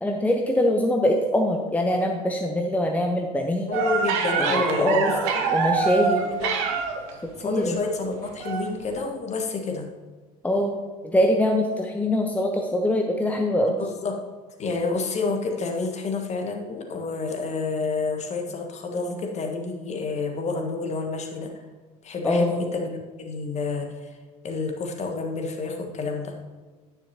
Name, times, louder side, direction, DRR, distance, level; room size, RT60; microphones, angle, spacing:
voice 1, 0.0-3.7 4.4-5.1 5.5-6.3 7.4-7.8 10.4-10.8 11.0-13.8 22.2-22.6, left 1 dB, 5° left, 2 dB, 0.8 m, -23 dB
voice 2, 3.7-5.6 6.0-6.8 7.4-9.9 13.8-14.1 14.6-21.5 22.0-22.9 23.2-24.2 24.4-26.3, left 3 dB, 35° left, 3 dB, 1.5 m, -29 dB
sound 1, 3.7-7.1 8.4-8.6 9.0-9.1, right 5 dB, 60° right, 1.2 m, -25 dB
9.9 x 9.8 x 2.9 m, 1.4 s
figure-of-eight pair, 65°, 20 cm